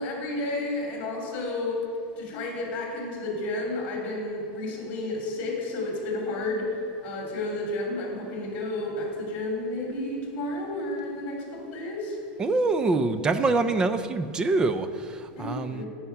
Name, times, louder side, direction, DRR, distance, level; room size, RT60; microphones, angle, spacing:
voice 1, 0.0-1.8 2.2-6.7 7.0-12.2 15.4-15.9, left 2 dB, 30° left, -2 dB, 2.8 m, -31 dB
voice 2, 12.4-15.8, right 3 dB, 15° right, 10 dB, 0.4 m, -25 dB
15.0 x 5.7 x 5.8 m, 2.4 s
supercardioid pair, 175°, 6 cm